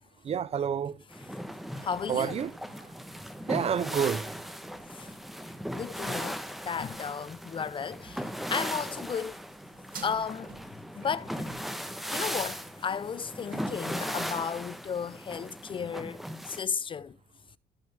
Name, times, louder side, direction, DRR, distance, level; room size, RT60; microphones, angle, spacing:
voice 1, 0.2-1.0 1.8-2.5 3.5-4.3, right 7 dB, 35° right, 0.6 m, -29 dB
sound 1, 1.1-16.6, equal, ahead, 1.1 m, -38 dB
voice 2, 1.8-2.4 4.9-5.2 5.7-9.3 10.0-10.6 11.0-11.6 12.1-17.2, left 6 dB, 30° left, 0.4 m, -34 dB
sound 2, 2.3-14.0, right 5 dB, 55° right, 4.3 m, -55 dB
13.5 x 5.2 x 3.5 m
cardioid pair, 110°, 17 cm